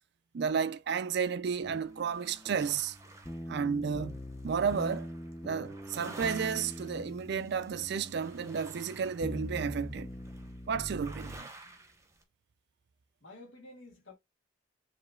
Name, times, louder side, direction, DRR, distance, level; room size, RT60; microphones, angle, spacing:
voice 1, 0.3-3.0 3.5-4.2 4.4-5.1 5.4-10.1 10.7-11.5, right 6 dB, 55° right, 0.4 m, -32 dB
sound 1, 1.4-12.2, right 2 dB, 15° right, 0.9 m, -53 dB
sound 2, 1.6-11.4, equal, 10° left, 0.6 m, -43 dB
voice 2, 13.2-14.1, left 2 dB, 70° left, 1.8 m, -51 dB
4.9 x 3.2 x 2.3 m
head